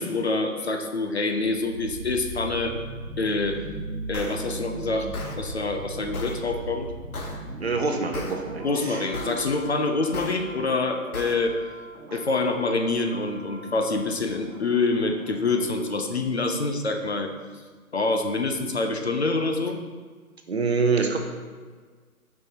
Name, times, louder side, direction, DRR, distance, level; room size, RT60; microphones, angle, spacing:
voice 1, 0.0-2.8 3.2-3.6 4.1-5.1 5.4-6.9 8.6-11.6 12.1-17.3 17.9-19.8, left 3 dB, 50° left, 5 dB, 0.5 m, -26 dB
sound 1, 1.2-16.2 16.5-16.6, right 2 dB, 85° right, 1.1 m, -39 dB
sound 2, 4.1-4.3 5.1-5.3 6.1-6.3 7.1-7.3 8.1-8.3 9.1-9.3 10.1-10.3 11.1-11.3, left 3 dB, 80° left, 1.3 m, -34 dB
voice 2, 7.6-9.4 12.1-12.2 20.5-21.2, right 4 dB, 45° right, 4 dB, 0.6 m, -26 dB
7.1 x 5.5 x 2.8 m, 1.5 s
hypercardioid pair, 175°, 43 cm